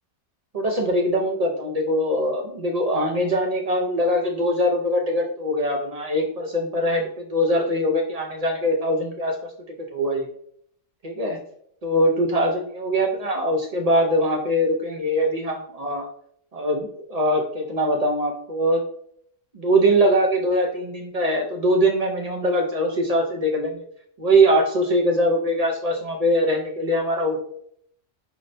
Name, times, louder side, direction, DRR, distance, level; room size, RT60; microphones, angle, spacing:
voice 1, 0.5-9.4 9.9-10.3 11.0-11.4 11.8-16.1 16.5-18.8 19.5-23.8 24.2-27.4, equal, 65° right, 0 dB, 0.4 m, -22 dB
4.8 x 2.1 x 2.6 m, 0.66 s
omnidirectional pair, 1.3 m